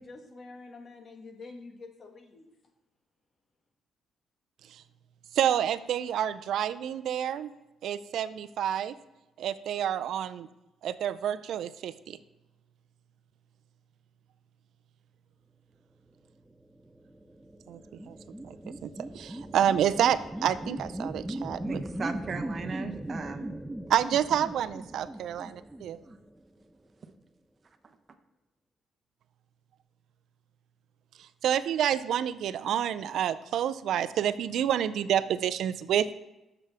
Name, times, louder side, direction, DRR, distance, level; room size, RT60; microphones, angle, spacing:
voice 1, 0.0-2.5, left 3 dB, 40° left, 4 dB, 1.6 m, -47 dB
voice 2, 5.3-7.5 7.8-8.9 9.4-10.5 10.8-12.2 17.7-17.8 18.1-18.2 18.4-18.5 18.8-21.8 23.9-26.0 31.2-36.1, right 10 dB, 75° right, 13 dB, 0.4 m, -28 dB
sound 1, 16.9-26.6, right 1 dB, 5° right, 0.5 m, -39 dB
voice 3, 21.6-23.6 27.8-27.9, right 4 dB, 45° right, 8 dB, 0.9 m, -37 dB
11.0 x 6.9 x 3.4 m, 0.97 s
cardioid pair, 90°, 0 cm